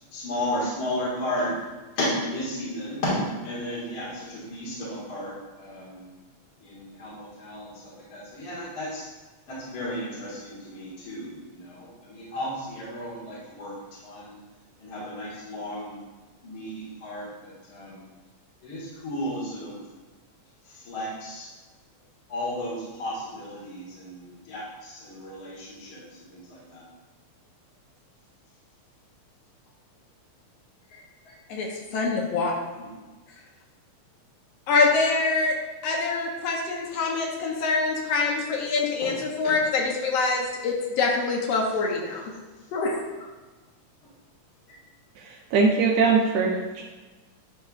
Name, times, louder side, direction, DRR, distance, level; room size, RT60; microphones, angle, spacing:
voice 1, 0.1-1.5 2.0-6.1 6.6-9.0 9.5-13.7 14.0-14.4 14.8-16.0 16.4-18.0 18.6-19.8 20.7-21.5 22.3-26.0 26.3-26.8 32.8-32.9 39.0-39.1 39.4-39.6, left 1 dB, 50° left, -9 dB, 2.4 m, -33 dB
voice 2, 31.9-32.5 34.7-35.5 35.8-42.3 42.7-43.3, left 4 dB, 70° left, -1 dB, 1.7 m, -25 dB
voice 3, 45.2-46.8, right 4 dB, 75° right, -2 dB, 1.7 m, -22 dB
11.5 x 4.3 x 2.4 m, 1.3 s
omnidirectional pair, 3.4 m